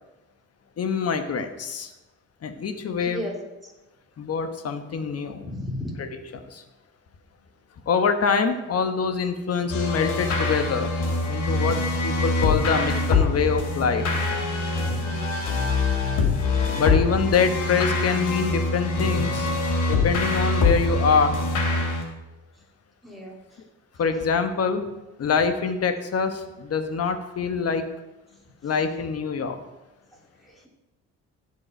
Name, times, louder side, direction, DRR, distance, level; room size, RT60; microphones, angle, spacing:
voice 1, 0.8-1.9 2.4-3.2 4.2-5.5 6.0-6.1 6.3-6.6 7.9-10.9 11.3-14.1 16.7-19.4 19.9-21.4 24.0-24.8 25.2-27.9 28.6-29.6, left 5 dB, 55° left, 8 dB, 1.3 m, -25 dB
voice 2, 3.0-3.3 3.6-3.7 5.4-6.0 14.9-15.3 19.0-19.3 23.0-23.4 30.4-30.7, left 1 dB, ahead, -3 dB, 3.5 m, -34 dB
sound 1, 9.7-22.0, left 3 dB, 80° left, 2.6 m, -24 dB
16.0 x 5.5 x 4.5 m, 1.0 s
cardioid pair, 90°, 30 cm